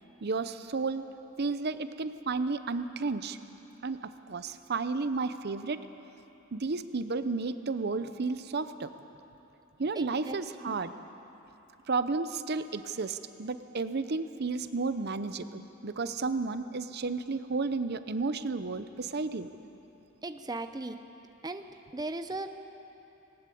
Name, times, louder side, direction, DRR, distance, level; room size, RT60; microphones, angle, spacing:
voice 1, 0.2-1.0 1.4-3.4 3.8-5.9 6.5-8.9 9.8-10.9 11.9-19.5, right 4 dB, 55° right, 11 dB, 0.7 m, -32 dB
voice 2, 10.0-10.4 10.6-10.8 20.2-21.0 21.4-21.6 21.9-22.6, right 2 dB, 20° right, 8 dB, 0.6 m, -37 dB
19.0 x 19.0 x 8.5 m, 3.0 s
head